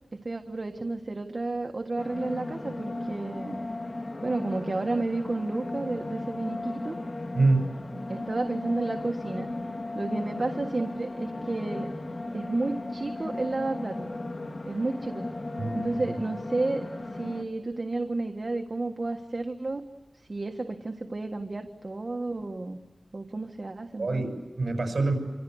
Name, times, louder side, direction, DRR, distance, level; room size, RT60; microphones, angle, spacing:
voice 1, 0.1-3.6 4.2-6.9 8.1-9.5 9.9-11.9 12.3-14.1 14.6-15.2 15.7-16.8 17.1-19.8 20.2-22.8 23.1-24.2, right 2 dB, 50° right, 4 dB, 1.6 m, -31 dB
sound 1, 2.0-17.4, left 2 dB, 50° left, 2.3 m, -36 dB
voice 2, 7.3-7.7 15.6-16.0 24.0-25.2, right 3 dB, 70° right, 5 dB, 6.6 m, -26 dB
27.5 x 25.5 x 8.0 m, 1.2 s
wide cardioid pair, 80°, 0 cm